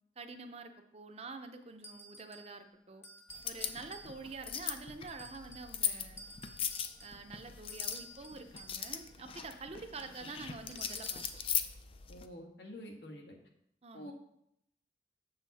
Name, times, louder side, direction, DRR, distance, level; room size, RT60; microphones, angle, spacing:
voice 1, 0.2-3.0 3.4-6.3 7.0-11.2 13.8-14.1, right 4 dB, 35° right, 7 dB, 0.6 m, -47 dB
sound 1, 1.8-2.6 3.0-4.5 5.1-5.8 6.2-9.1 10.7-11.5, right 1 dB, 15° left, 0.8 m, -52 dB
sound 2, 3.3-12.3, left 8 dB, 30° left, 0.4 m, -39 dB
voice 2, 12.1-13.4 13.9-14.1, equal, 75° left, 1 dB, 1.5 m, -48 dB
7.3 x 6.9 x 4.1 m, 0.75 s
head